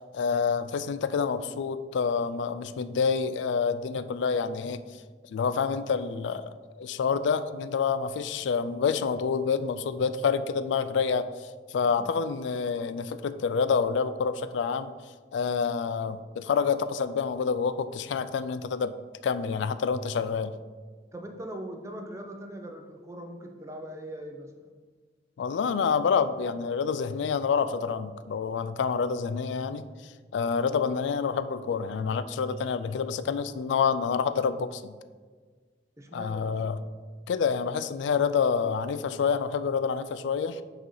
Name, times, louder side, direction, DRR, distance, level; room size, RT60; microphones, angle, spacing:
voice 1, 0.1-4.8 5.3-14.9 15.3-18.9 19.2-20.5 25.4-29.9 30.3-34.9 36.1-36.8 37.3-40.6, left 6 dB, 85° left, 13 dB, 0.3 m, -28 dB
voice 2, 21.1-24.5 36.0-36.5, right 1 dB, 15° right, 4 dB, 0.4 m, -40 dB
6.0 x 2.8 x 5.5 m, 1.5 s
head